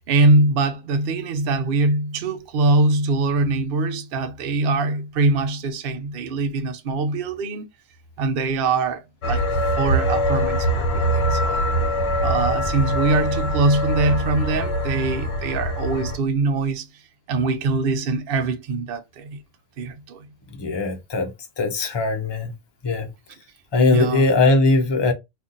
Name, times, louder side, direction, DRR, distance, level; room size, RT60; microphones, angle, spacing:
voice 1, 0.0-7.6 8.2-9.4 9.8-11.7 12.2-16.9 17.3-19.4 19.8-20.3 23.9-24.3, right 3 dB, 55° right, 0.7 m, -22 dB
sound 1, 9.2-16.2, equal, 55° left, 0.9 m, -23 dB
voice 2, 20.5-21.3 21.6-22.5 22.8-23.1 23.7-25.1, left 3 dB, 40° left, 0.4 m, -20 dB
2.7 x 2.5 x 3.7 m
omnidirectional pair, 1.4 m